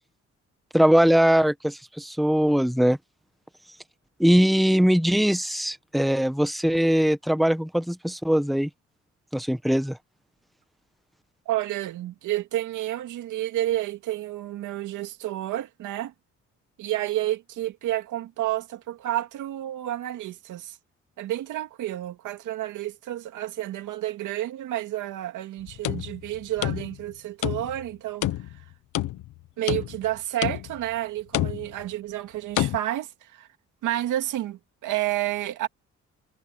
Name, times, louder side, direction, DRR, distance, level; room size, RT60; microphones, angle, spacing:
voice 1, 0.7-3.0 4.2-8.7 9.3-10.0, equal, ahead, 1.3 m, -21 dB
voice 2, 11.5-16.1 16.8-20.8 21.2-28.3 28.5-28.6 29.6-33.5 33.8-35.7, right 14 dB, 85° right, 2.4 m, -30 dB
sound 1, 25.6-27.1 27.4-27.9 28.2-29.3 29.7-30.1 30.4-30.9 31.3-31.9 32.6-32.8, left 14 dB, 85° left, 1.4 m, -29 dB
cardioid pair, 90°, 30 cm